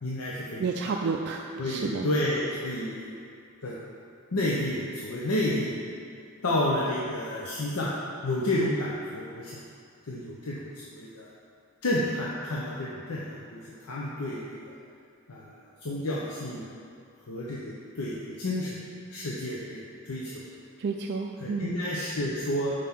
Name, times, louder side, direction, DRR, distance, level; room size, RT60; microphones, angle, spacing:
voice 1, 0.0-0.9 1.6-3.1 3.6-3.8 4.3-5.9 6.4-7.9 8.2-9.6 10.0-11.3 11.8-14.7 15.3-16.7 17.3-20.4 21.4-22.7, left 1 dB, 80° left, -5 dB, 0.8 m, -31 dB
voice 2, 0.6-2.1 20.8-21.7, right 4 dB, 50° right, 2 dB, 0.3 m, -30 dB
5.6 x 5.1 x 5.9 m, 2.3 s
head